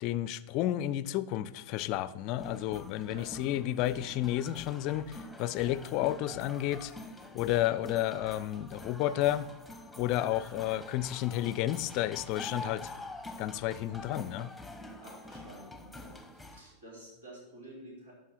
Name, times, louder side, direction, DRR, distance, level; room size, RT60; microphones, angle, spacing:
voice 1, 0.0-6.9 7.3-9.5 10.0-12.9 13.4-14.5, left 13 dB, 40° left, 17 dB, 0.4 m, -31 dB
sound 1, 2.4-16.6, left 1 dB, ahead, 1.1 m, -46 dB
voice 2, 3.1-3.5 8.9-9.1 14.0-14.2 14.8-18.1, right 1 dB, 65° right, -4 dB, 3.6 m, -51 dB
11.5 x 5.5 x 6.1 m, 0.99 s
figure-of-eight pair, 90°, 0 cm